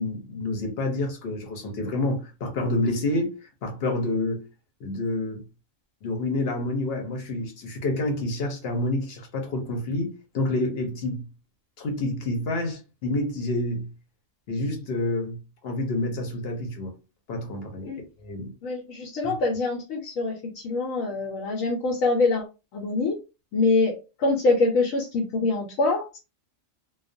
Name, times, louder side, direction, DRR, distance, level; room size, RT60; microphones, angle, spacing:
voice 1, 0.0-3.3 3.6-4.4 4.8-5.4 6.0-11.3 11.8-13.9 14.5-16.9 17.3-17.9 18.2-18.5 19.2-19.3, left 2 dB, 55° left, 0.9 m, -28 dB
voice 2, 18.6-22.4 22.7-23.2 23.5-26.2, left 3 dB, 85° left, 1.1 m, -24 dB
2.3 x 2.2 x 2.5 m
omnidirectional pair, 1.3 m